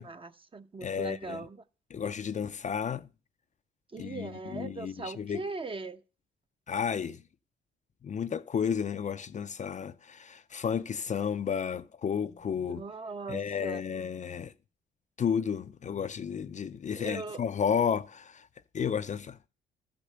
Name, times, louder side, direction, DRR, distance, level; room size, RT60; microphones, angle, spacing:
voice 1, 0.0-1.6 3.9-6.0 12.6-13.8 16.9-17.4, right 3 dB, 25° right, 0.8 m, -40 dB
voice 2, 0.8-1.4 1.9-3.1 4.0-5.4 6.7-7.2 8.0-12.8 13.3-14.5 15.2-18.5 18.7-19.4, left 7 dB, 40° left, 0.5 m, -32 dB
13.5 x 5.2 x 6.6 m
cardioid pair, 90°, 20 cm